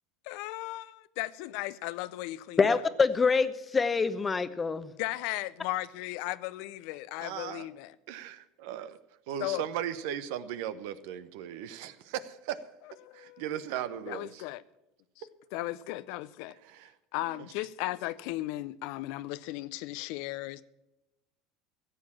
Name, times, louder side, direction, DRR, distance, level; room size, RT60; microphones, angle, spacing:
voice 1, 0.2-2.8 5.0-7.9 9.4-9.6 13.0-13.4 14.1-14.6 15.5-16.6 17.1-20.6, left 17 dB, 65° left, 0.5 m, -36 dB
voice 2, 2.6-4.9, left 4 dB, 25° left, 0.9 m, -25 dB
voice 3, 7.2-7.7 8.1-9.0 9.3-12.6 13.1-14.4 16.6-17.0 17.2-17.5, right 10 dB, 70° right, 0.8 m, -37 dB
15.5 x 7.6 x 7.1 m
hypercardioid pair, 85°, 0 cm